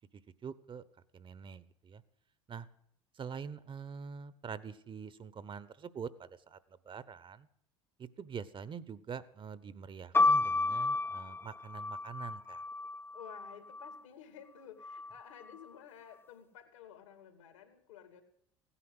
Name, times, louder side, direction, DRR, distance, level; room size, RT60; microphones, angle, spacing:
voice 1, 0.4-0.8 1.1-2.0 2.5-2.7 3.1-6.6 6.8-7.5 8.0-12.6, right 6 dB, 35° right, 17 dB, 1.1 m, -45 dB
sound 1, 10.1-14.0 14.8-15.5, left 3 dB, 15° left, 0.6 m, -32 dB
voice 2, 13.1-18.2, left 9 dB, 80° left, 8 dB, 2.7 m, -53 dB
17.0 x 10.0 x 8.1 m, 0.70 s
hypercardioid pair, 70°, 16 cm